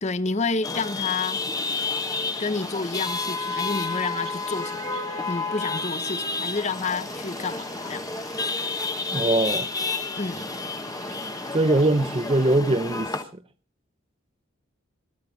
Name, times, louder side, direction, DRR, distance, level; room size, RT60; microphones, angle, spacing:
voice 1, 0.0-1.4 2.4-4.9 5.3-8.0 10.2-10.5, left 4 dB, 35° left, 0.7 m, -29 dB
Chatter / Vehicle horn car horn honking / Traffic noise roadway noise, 0.6-13.2, left 3 dB, 15° left, 1.1 m, -30 dB
sound 1, 1.5-12.6, right 8 dB, 80° right, 2.5 m, -47 dB
voice 2, 9.1-9.7 11.5-13.2, right 2 dB, 25° right, 0.6 m, -21 dB
25.0 x 9.0 x 3.9 m
head